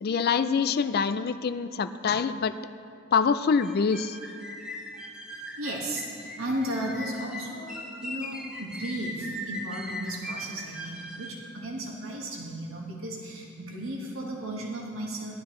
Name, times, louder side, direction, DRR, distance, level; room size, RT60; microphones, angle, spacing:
voice 1, 0.0-2.5 3.1-4.2, left 5 dB, 50° left, 11 dB, 0.4 m, -25 dB
sound 1, 3.6-11.4, left 1 dB, 5° right, 1.0 m, -39 dB
voice 2, 5.6-15.4, right 1 dB, 85° right, -2 dB, 1.7 m, -35 dB
17.0 x 12.0 x 3.2 m, 2.6 s
head